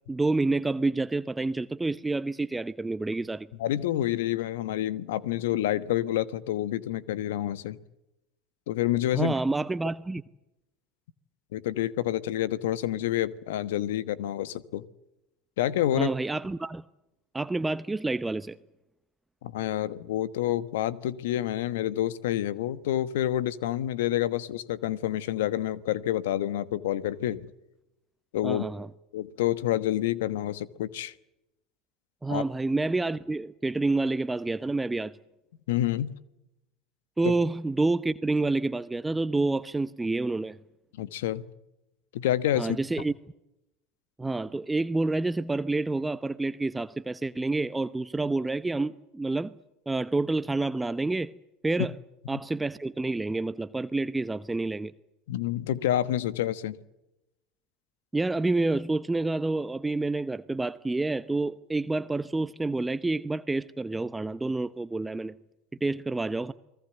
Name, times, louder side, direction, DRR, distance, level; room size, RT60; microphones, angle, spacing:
voice 1, 0.1-3.5 9.1-10.2 15.9-16.8 17.3-18.6 28.4-28.9 32.2-35.1 37.2-40.6 42.5-43.1 44.2-49.5 49.9-51.3 51.6-51.9 52.3-54.9 58.1-65.4 65.8-66.5, right 2 dB, 10° right, 0.8 m, -28 dB
voice 2, 3.6-7.8 8.7-9.3 11.5-14.8 15.6-16.1 19.4-27.5 28.3-28.6 29.1-31.1 32.3-32.4 35.7-36.2 37.2-37.3 41.0-41.4 42.1-42.8 55.3-56.8, left 13 dB, 75° left, 1.2 m, -28 dB
29.5 x 20.0 x 8.0 m
hypercardioid pair, 80°, 0 cm